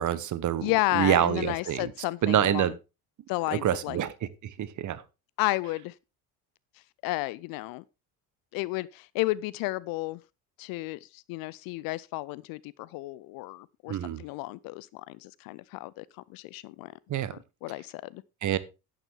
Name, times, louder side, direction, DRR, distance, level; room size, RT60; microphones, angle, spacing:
voice 1, 0.0-1.9 2.2-2.7 3.5-4.1 4.4-5.0 13.9-14.2 17.1-17.4 18.4-18.6, right 11 dB, 40° right, 1.0 m, -26 dB
voice 2, 0.6-2.7 3.3-4.0 5.4-5.9 7.0-7.8 8.5-10.2 10.6-16.9 17.3-18.2, left 20 dB, 50° left, 0.5 m, -32 dB
11.0 x 8.9 x 3.3 m
figure-of-eight pair, 55°, 48 cm